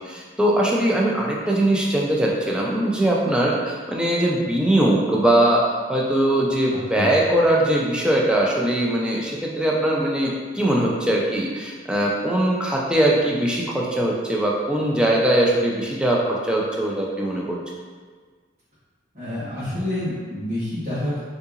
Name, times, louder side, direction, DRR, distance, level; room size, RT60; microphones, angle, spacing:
voice 1, 0.0-5.6 5.9-17.6, right 1 dB, 5° right, -3 dB, 0.4 m, -21 dB
voice 2, 19.1-21.2, left 1 dB, 50° right, -13 dB, 1.3 m, -27 dB
3.7 x 2.7 x 2.4 m, 1.5 s
head